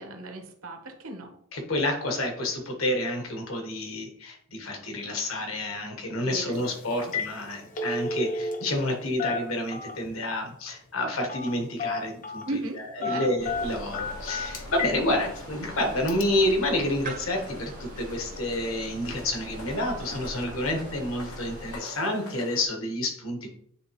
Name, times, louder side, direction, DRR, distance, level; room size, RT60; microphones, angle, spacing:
voice 1, 0.0-1.4 6.2-6.6 6.9-7.1 12.4-13.3, right 2 dB, 75° right, 4 dB, 1.2 m, -37 dB
voice 2, 1.5-23.5, left 1 dB, 65° left, 3 dB, 1.5 m, -29 dB
Telephone, 6.5-6.7 7.0-7.3 7.6-8.9 9.2-10.1 11.3-11.5 11.8-12.5 13.0-15.0 15.4-15.5 16.1-16.2, left 3 dB, 40° left, 0.7 m, -31 dB
sound 1, 13.4-22.7, left 2 dB, 90° left, 1.3 m, -46 dB
sound 2, 13.4-21.8, right 2 dB, 40° right, 0.4 m, -42 dB
9.5 x 3.4 x 3.1 m, 0.66 s
head